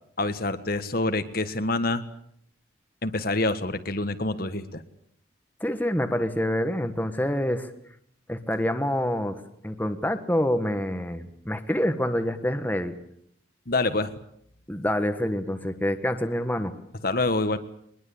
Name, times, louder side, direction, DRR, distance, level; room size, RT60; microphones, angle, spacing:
voice 1, 0.2-2.0 3.0-4.8 13.7-14.1 17.0-17.6, left 2 dB, 50° left, 10 dB, 1.6 m, -26 dB
voice 2, 5.6-7.7 8.3-12.9 14.7-16.7, equal, 10° left, 7 dB, 1.4 m, -27 dB
23.0 x 21.0 x 8.6 m, 0.68 s
head